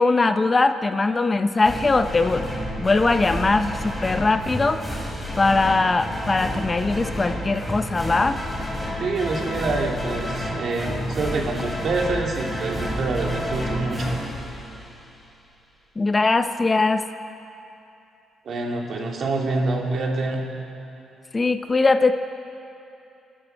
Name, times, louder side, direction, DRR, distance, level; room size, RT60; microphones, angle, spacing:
voice 1, 0.0-2.5 2.8-4.8 5.4-8.4 16.0-17.0 21.3-22.1, left 3 dB, 25° left, 9 dB, 0.6 m, -20 dB
sound 1, 1.6-15.3, equal, 10° left, 3.6 m, -30 dB
voice 2, 9.0-14.2 18.4-20.4, right 3 dB, 55° right, 0 dB, 2.5 m, -26 dB
24.5 x 13.0 x 4.5 m, 2.8 s
cardioid pair, 90°, 0 cm